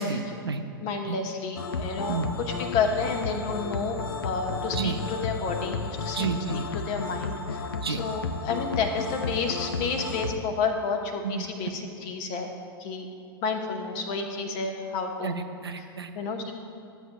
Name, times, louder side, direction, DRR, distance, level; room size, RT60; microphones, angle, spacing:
voice 1, 0.0-0.6 1.1-1.2 2.1-2.4 4.7-5.0 6.2-6.6 7.8-8.0 11.2-11.5 15.2-16.1, right 4 dB, 75° right, 7 dB, 0.6 m, -30 dB
voice 2, 0.8-12.5 12.8-13.1 13.4-15.4 16.1-16.5, left 4 dB, 40° left, 4 dB, 0.9 m, -30 dB
sound 1, 1.6-10.4, left 4 dB, 70° left, 0.5 m, -33 dB
13.5 x 8.1 x 2.2 m, 2.4 s
figure-of-eight pair, 100°, 13 cm